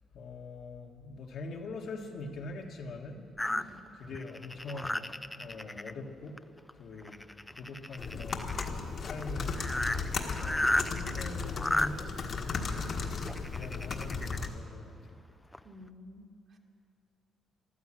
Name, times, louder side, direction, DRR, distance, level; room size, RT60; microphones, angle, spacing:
voice 1, 0.1-3.3 3.6-6.4 6.8-7.2 7.6-8.6 9.0-9.6 10.4-15.2, left 3 dB, 70° left, 1 dB, 1.8 m, -43 dB
sound 1, 3.4-5.9 6.4-6.7 7.0-8.7 9.2-9.3 9.5-11.9 12.9-14.5 15.1-15.2 15.5-15.6, left 1 dB, 10° left, 0.4 m, -33 dB
voice 2, 3.5-3.8 15.6-16.6, equal, 55° right, 1 dB, 2.0 m, -51 dB
sound 2, 8.0-14.5, left 4 dB, 55° left, 1.5 m, -35 dB
14.5 x 12.5 x 7.7 m, 2.5 s
cardioid pair, 90°, 0 cm